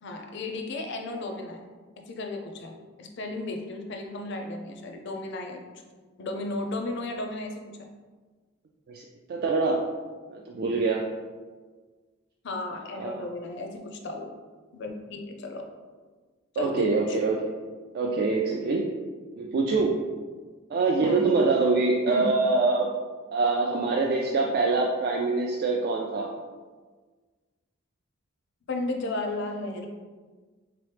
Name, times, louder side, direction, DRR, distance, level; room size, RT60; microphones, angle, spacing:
voice 1, 0.0-1.7 2.0-5.6 6.2-7.9 12.4-14.3 14.7-15.6 16.5-17.2 21.0-21.3 22.1-22.3 28.7-29.9, left 2 dB, 60° left, 3 dB, 0.5 m, -34 dB
voice 2, 9.3-9.9 10.3-11.1 13.0-13.3 16.6-17.5 17.9-18.9 19.4-20.0 20.7-22.9 23.3-26.3, right 3 dB, 50° right, 0 dB, 0.3 m, -24 dB
3.7 x 3.0 x 3.3 m, 1.4 s
head